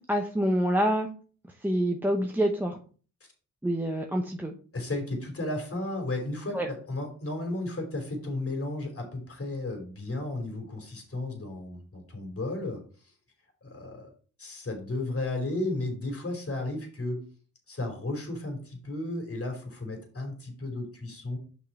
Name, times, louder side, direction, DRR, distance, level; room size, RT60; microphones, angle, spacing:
voice 1, 0.1-1.1 1.6-2.8 3.6-4.5 6.5-6.7, equal, 5° right, 2 dB, 1.0 m, -26 dB
voice 2, 4.7-12.8 13.6-14.1 14.4-17.2 17.7-21.4, left 2 dB, 40° left, 3 dB, 3.2 m, -34 dB
6.7 x 5.4 x 4.2 m, 0.40 s
cardioid pair, 70°, 33 cm